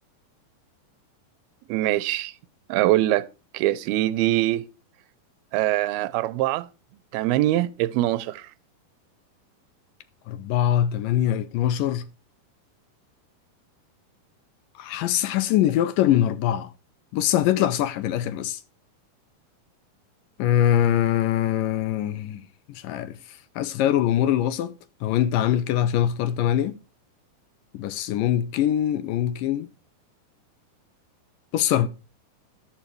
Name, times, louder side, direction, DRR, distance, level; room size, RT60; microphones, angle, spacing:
voice 1, 1.7-2.3 2.7-3.3 3.5-4.6 5.5-6.7 7.1-8.5, right 15 dB, 85° right, 2.7 m, -23 dB
voice 2, 10.3-12.0 14.8-16.7 17.1-18.6 20.4-22.5 22.8-26.8 27.7-29.7 31.5-31.9, left 11 dB, 75° left, 2.1 m, -23 dB
13.0 x 11.5 x 3.1 m
omnidirectional pair, 4.3 m